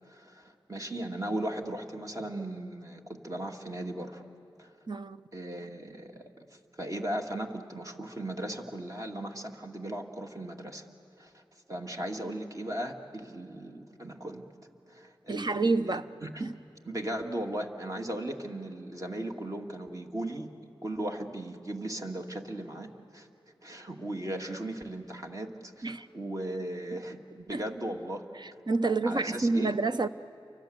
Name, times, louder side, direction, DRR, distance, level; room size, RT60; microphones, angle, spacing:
voice 1, 0.0-4.2 4.6-4.7 5.3-10.9 11.2-11.4 11.7-14.5 14.9-16.5 16.8-20.5 20.8-23.3 23.6-28.3 28.8-29.8, right 1 dB, 40° right, 2.3 m, -37 dB
voice 2, 4.9-5.2 15.3-16.0 16.4-16.5 25.8-26.1 27.5-27.6 28.7-30.1, right 3 dB, 55° right, 0.8 m, -28 dB
30.0 x 24.0 x 8.0 m
cardioid pair, 45°, 9 cm